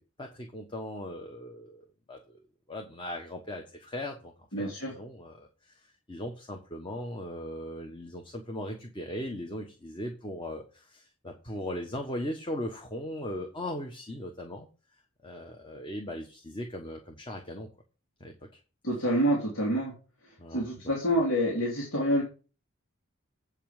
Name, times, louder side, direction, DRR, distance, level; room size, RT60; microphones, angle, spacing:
voice 1, 0.2-2.4 2.7-5.8 6.1-14.7 15.2-17.7 18.2-18.3 20.4-20.9, left 1 dB, 25° left, 2 dB, 1.3 m, -38 dB
voice 2, 4.5-4.9 18.8-19.9 20.5-22.2, equal, 75° left, -4 dB, 3.3 m, -27 dB
8.2 x 5.7 x 7.3 m, 0.34 s
head